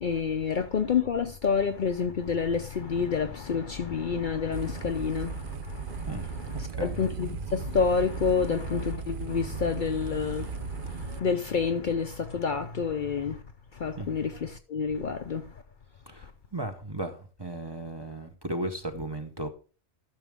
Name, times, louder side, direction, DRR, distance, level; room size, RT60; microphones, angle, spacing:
voice 1, 0.0-13.4 13.7-15.5, left 6 dB, 50° left, 0.7 m, -29 dB
sound 1, 4.5-11.2, right 6 dB, 55° right, 0.8 m, -36 dB
voice 2, 6.5-7.0 14.0-14.1 16.1-16.2 16.5-19.5, right 2 dB, 25° right, 0.8 m, -35 dB
12.5 x 6.3 x 3.5 m
omnidirectional pair, 1.2 m